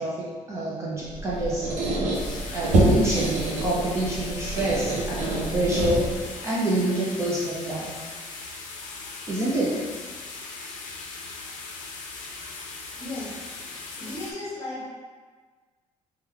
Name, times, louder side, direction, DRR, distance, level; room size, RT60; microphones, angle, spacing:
voice 1, 0.0-7.9 9.3-9.8, right 1 dB, 20° right, -6 dB, 0.4 m, -27 dB
Squeak, 1.1-6.3, right 1 dB, 70° right, 0.7 m, -27 dB
sound 1, 2.1-14.3, left 3 dB, 90° left, 0.5 m, -39 dB
voice 2, 13.0-13.3 13.9-14.9, left 2 dB, 25° left, -7 dB, 0.9 m, -35 dB
3.1 x 2.2 x 3.5 m, 1.5 s
cardioid pair, 175°, 13 cm